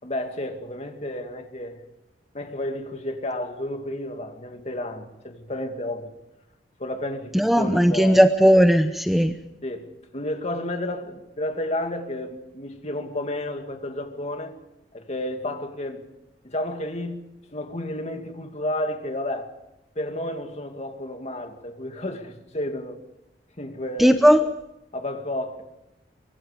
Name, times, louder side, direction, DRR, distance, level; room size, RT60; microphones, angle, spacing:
voice 1, 0.0-1.8 2.3-6.1 6.8-8.2 9.6-14.5 14.9-16.1 16.4-19.5 20.0-23.0 23.6-24.3 24.9-25.7, left 1 dB, 40° left, 2.4 m, -31 dB
voice 2, 7.3-9.4 24.0-24.4, equal, ahead, 0.7 m, -17 dB
24.5 x 24.0 x 5.2 m
head